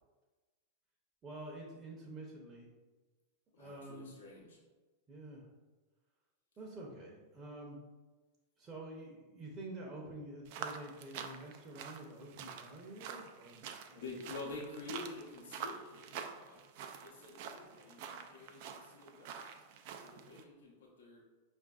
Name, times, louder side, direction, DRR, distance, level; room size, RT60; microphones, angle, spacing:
voice 1, 1.2-2.7 3.6-4.1 5.1-5.5 6.6-7.8 8.6-14.0, right 2 dB, 30° right, -2 dB, 0.7 m, -48 dB
voice 2, 3.5-4.6 13.9-16.6 17.0-19.5 20.0-21.3, left 3 dB, 75° left, -3 dB, 0.8 m, -48 dB
sound 1, 10.4-20.4, right 7 dB, 55° right, 0.3 m, -47 dB
5.0 x 2.5 x 2.3 m, 1.2 s
hypercardioid pair, 100°, 0 cm